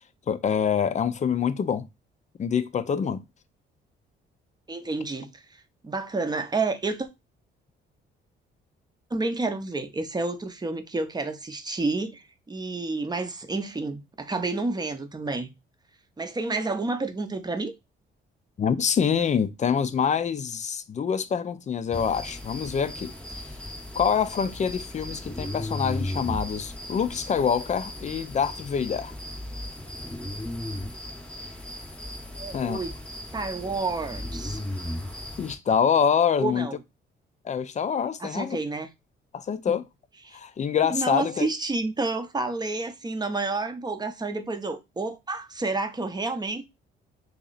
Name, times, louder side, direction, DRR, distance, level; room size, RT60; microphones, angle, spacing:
voice 1, 0.3-1.9 2.4-3.2 18.6-23.1 24.0-29.1 32.5-32.8 35.4-36.7 37.4-38.6 39.3-39.8 40.3-41.5, left 7 dB, 35° left, 0.5 m, -25 dB
voice 2, 4.7-5.4 5.8-7.1 9.1-15.5 16.2-17.7 32.4-32.9 33.3-34.6 36.4-36.8 38.2-38.9 39.7-39.8 40.2-40.4 40.9-46.6, right 3 dB, 20° right, 0.7 m, -30 dB
sound 1, 21.9-35.6, left 1 dB, 5° left, 0.9 m, -36 dB
3.0 x 2.9 x 3.9 m
cardioid pair, 90°, 20 cm